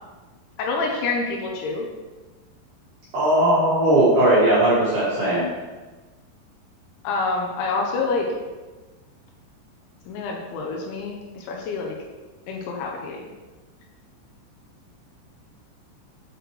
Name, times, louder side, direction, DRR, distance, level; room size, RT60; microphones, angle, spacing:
voice 1, 0.6-1.9 7.0-8.3 10.1-12.0 12.5-13.3, left 3 dB, 75° left, 0 dB, 3.0 m, -27 dB
voice 2, 3.1-5.5, right 1 dB, 60° right, -9 dB, 2.2 m, -18 dB
8.0 x 6.3 x 3.2 m, 1.3 s
omnidirectional pair, 5.7 m